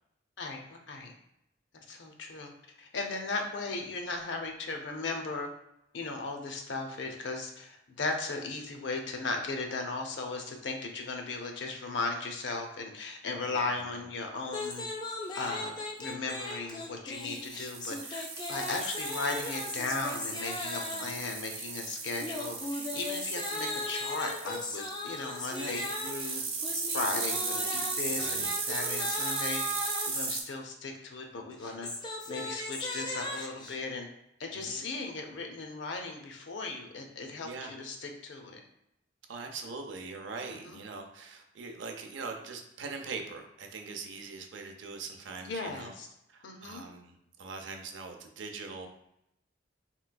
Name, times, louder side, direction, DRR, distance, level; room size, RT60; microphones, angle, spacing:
voice 1, 0.4-1.1 1.7-2.5 2.8-5.5 5.9-14.9 15.3-26.4 26.9-29.6 30.0-31.9 32.3-34.1 34.4-38.6 40.6-40.8 45.4-46.1 46.4-46.9, left 3 dB, 70° left, 3 dB, 0.5 m, -37 dB
voice 2, 13.4-14.0 20.9-21.1 25.5-25.8 28.1-28.5 34.5-34.8 37.4-37.8 39.3-45.9 46.3-48.9, right 4 dB, 80° right, 4 dB, 0.5 m, -42 dB
sound 1, 14.5-21.2 22.2-30.3 31.5-33.8, left 2 dB, 25° left, 0.4 m, -38 dB
sound 2, 17.2-30.4, right 4 dB, 30° right, 0.6 m, -36 dB
3.3 x 3.0 x 2.2 m, 0.80 s
head